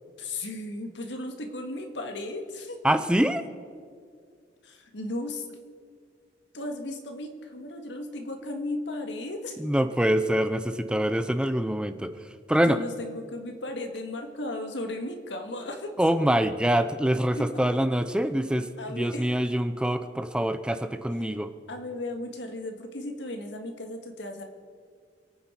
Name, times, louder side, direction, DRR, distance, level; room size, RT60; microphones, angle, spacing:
voice 1, 0.2-2.8 4.6-5.5 6.5-9.6 12.6-15.9 17.3-17.8 18.8-19.3 21.2-21.4 21.7-24.4, left 1 dB, 80° left, 5 dB, 1.8 m, -35 dB
voice 2, 2.8-3.4 9.6-12.1 12.5-12.8 16.0-21.5, right 1 dB, 5° right, 10 dB, 0.5 m, -25 dB
27.5 x 9.3 x 4.5 m, 2.1 s
head